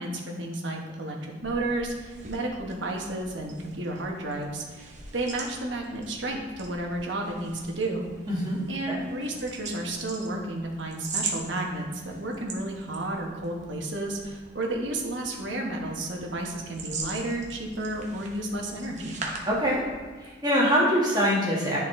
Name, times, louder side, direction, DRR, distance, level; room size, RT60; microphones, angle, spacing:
voice 1, 0.0-8.1 8.7-19.2, right 1 dB, 75° right, 1 dB, 1.2 m, -32 dB
sound 1, 1.3-20.2, right 4 dB, 40° right, 1.0 m, -42 dB
voice 2, 8.3-8.6 8.9-9.0 19.4-19.8 20.2-21.8, equal, 20° right, -6 dB, 1.7 m, -24 dB
10.5 x 4.1 x 3.2 m, 1.4 s
head